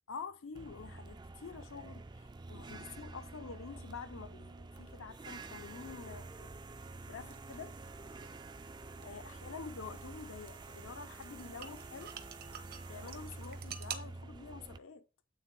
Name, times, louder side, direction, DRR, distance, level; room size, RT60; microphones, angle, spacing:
voice 1, 0.1-8.5 9.0-12.1 12.5-15.0, left 5 dB, 90° left, 0.6 m, -48 dB
sound 1, 0.5-14.8, right 3 dB, 20° right, 0.3 m, -48 dB
sound 2, 7.2-14.0, right 8 dB, 50° right, 0.8 m, -50 dB
8.4 x 3.8 x 4.4 m
head